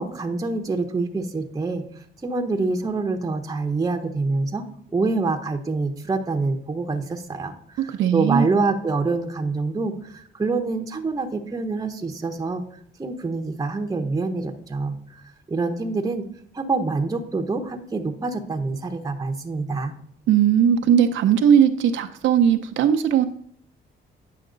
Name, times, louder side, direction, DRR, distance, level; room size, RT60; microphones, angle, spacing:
voice 1, 0.0-1.9 2.2-4.7 4.9-12.6 13.0-15.2 15.5-16.2 16.5-19.9, right 3 dB, 15° right, 4 dB, 0.8 m, -26 dB
voice 2, 7.9-8.5 20.3-23.3, right 8 dB, 75° right, 6 dB, 0.7 m, -18 dB
9.2 x 5.8 x 3.9 m, 0.65 s
cardioid pair, 90°, 20 cm